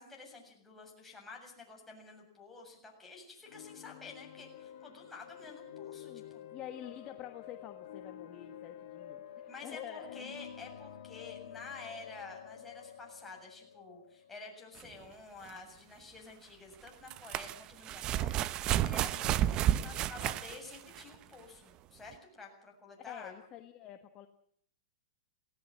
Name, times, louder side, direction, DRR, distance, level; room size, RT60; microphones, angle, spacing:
voice 1, 0.0-6.5 9.5-23.3, left 3 dB, 10° left, 0 dB, 7.5 m, -50 dB
sound 1, 3.4-15.1, left 10 dB, 65° left, 2.6 m, -49 dB
voice 2, 5.5-6.2 6.5-10.4 18.8-19.1 23.1-24.3, left 11 dB, 35° left, 7 dB, 1.5 m, -48 dB
sound 2, 14.8-14.9 16.9-21.1 22.1-22.2, right 12 dB, 35° right, 0.8 m, -31 dB
18.0 x 18.0 x 8.8 m, 0.62 s
hypercardioid pair, 125°, 2 cm